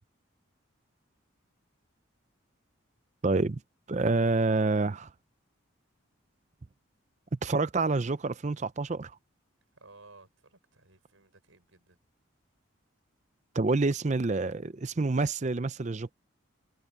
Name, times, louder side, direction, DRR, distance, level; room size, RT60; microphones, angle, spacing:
voice 1, 3.2-3.6 3.9-5.1 7.3-9.2 13.5-16.1, right 3 dB, 35° right, 0.5 m, -27 dB
voice 2, 9.7-12.0, right 3 dB, 90° right, 5.8 m, -56 dB
head